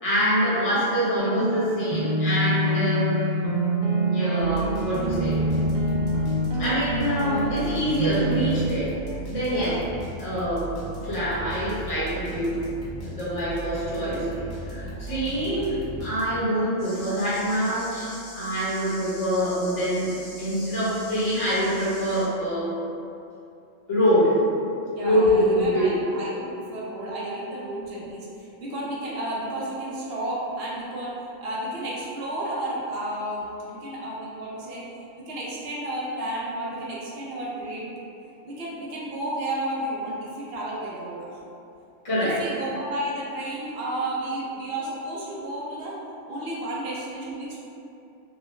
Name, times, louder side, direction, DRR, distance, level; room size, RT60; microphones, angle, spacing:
voice 1, 0.0-3.1 4.0-5.4 6.6-9.0 9.3-9.8 10.2-10.7 11.0-12.5 13.0-14.3 14.7-22.7 23.9-24.4 25.0-25.9 42.0-42.4, equal, 30° left, -11 dB, 1.0 m, -25 dB
sound 1, 1.2-8.4, right 1 dB, 85° right, 0.4 m, -26 dB
sound 2, 4.4-16.6, right 2 dB, 85° left, 1.2 m, -37 dB
voice 2, 9.5-9.8 24.9-28.3 28.6-34.8 35.3-37.8 38.4-41.3 42.2-46.0 46.3-47.6, right 1 dB, 55° right, -6 dB, 0.8 m, -32 dB
sound 3, 16.8-22.2, left 1 dB, 55° left, 1.0 m, -43 dB
3.7 x 2.2 x 3.1 m, 2.7 s
omnidirectional pair, 1.4 m